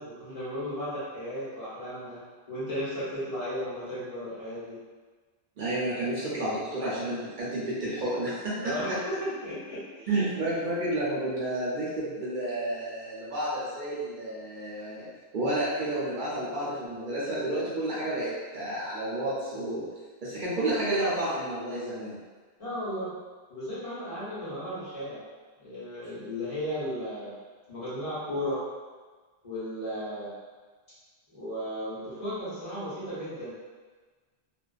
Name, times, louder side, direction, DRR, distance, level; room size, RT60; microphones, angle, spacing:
voice 1, 0.0-2.2 2.5-4.8 8.6-10.2 22.6-23.1 23.5-25.2 25.6-27.3 27.7-28.6 29.4-30.3 31.3-33.5, equal, 35° left, -12 dB, 1.1 m, -35 dB
voice 2, 5.6-9.0 10.1-15.1 15.3-19.8 20.2-22.1, right 1 dB, 60° right, -8 dB, 0.7 m, -30 dB
2.4 x 2.4 x 2.3 m, 1.4 s
omnidirectional pair, 1.0 m